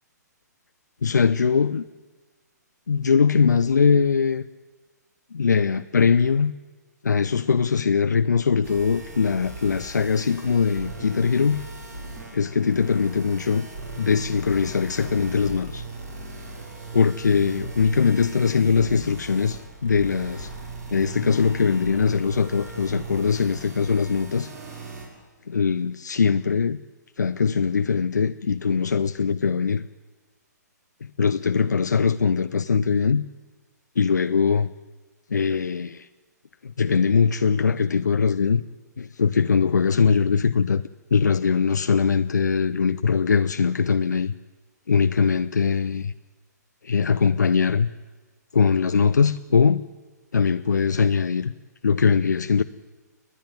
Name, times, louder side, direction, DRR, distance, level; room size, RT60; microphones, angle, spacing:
voice 1, 1.0-1.8 2.9-4.5 5.3-6.5 7.0-11.7 12.3-13.7 14.0-15.9 16.9-20.5 20.9-24.5 25.5-26.8 27.2-29.9 31.0-33.2 34.0-34.7 35.3-36.1 36.6-38.6 39.0-40.8 41.1-44.3 44.9-46.1 46.8-47.9 48.5-49.9 50.3-51.5 51.8-52.6, left 6 dB, 75° left, 0.6 m, -21 dB
sound 1, 8.6-25.1, right 2 dB, 60° right, 6.3 m, -38 dB
29.5 x 10.5 x 9.2 m
figure-of-eight pair, 125°, 10 cm